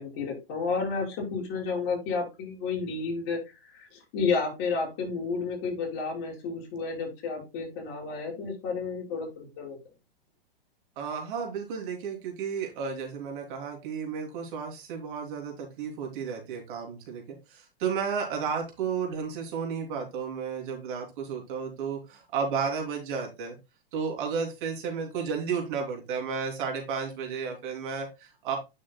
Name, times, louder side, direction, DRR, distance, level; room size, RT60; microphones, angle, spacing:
voice 1, 0.0-9.8, left 4 dB, 40° left, -2 dB, 5.4 m, -31 dB
voice 2, 11.0-23.6 23.9-28.6, right 6 dB, 55° right, 1 dB, 3.2 m, -33 dB
9.7 x 6.4 x 2.3 m, 0.24 s
hypercardioid pair, 130°, 30 cm